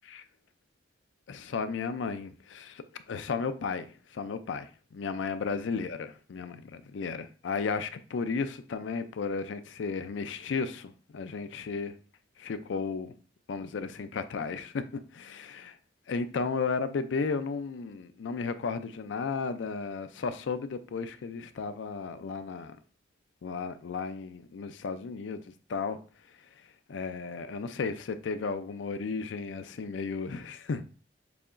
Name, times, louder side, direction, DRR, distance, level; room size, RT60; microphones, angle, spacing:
voice 1, 1.3-11.9 12.4-13.1 13.5-14.8 15.1-15.8 16.1-22.8 23.4-26.0 26.3-30.8, left 5 dB, 85° left, 0.4 m, -34 dB
6.9 x 2.8 x 2.5 m
head